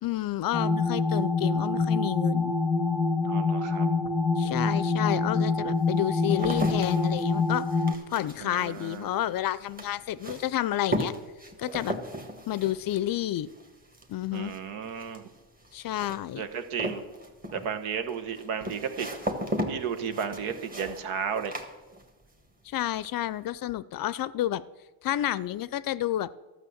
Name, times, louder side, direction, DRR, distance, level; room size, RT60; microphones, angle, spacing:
voice 1, 0.0-2.5 4.4-7.7 8.1-11.1 11.6-12.0 12.5-13.5 14.1-14.5 15.7-16.4 22.7-24.6 25.0-26.3, left 13 dB, 45° left, 18 dB, 0.5 m, -30 dB
sound 1, 0.5-7.9, left 3 dB, 10° left, 0.7 m, -26 dB
voice 2, 3.2-3.9 4.4-4.6 8.4-9.1 14.3-15.2 16.3-17.0 17.5-19.1 19.7-21.6, right 7 dB, 85° right, 8 dB, 1.3 m, -33 dB
sound 2, 4.5-4.6 5.2-22.4 22.7-23.3, equal, 15° right, 1.5 m, -37 dB
12.5 x 6.4 x 7.9 m, 1.2 s
cardioid pair, 110°, 49 cm